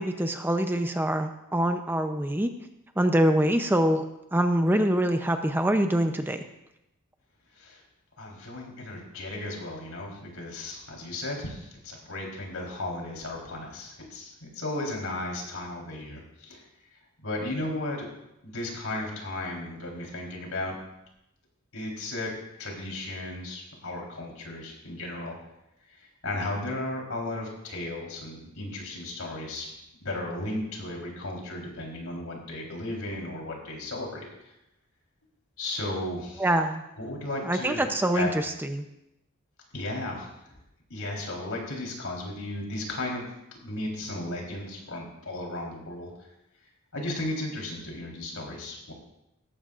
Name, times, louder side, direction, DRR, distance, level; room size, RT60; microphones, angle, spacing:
voice 1, 0.0-2.5 3.0-4.0 4.3-6.4 36.4-36.8 37.5-38.9, right 1 dB, 10° right, 6 dB, 0.6 m, -24 dB
voice 2, 8.2-16.6 17.2-18.1 18.4-20.8 21.7-22.3 22.6-25.3 26.0-34.3 35.6-36.5 37.0-37.9 38.1-38.4 39.7-40.3 40.9-43.2 43.6-46.1 46.9-48.9, left 1 dB, 80° left, -1 dB, 3.9 m, -35 dB
17.5 x 14.0 x 2.5 m, 0.86 s
head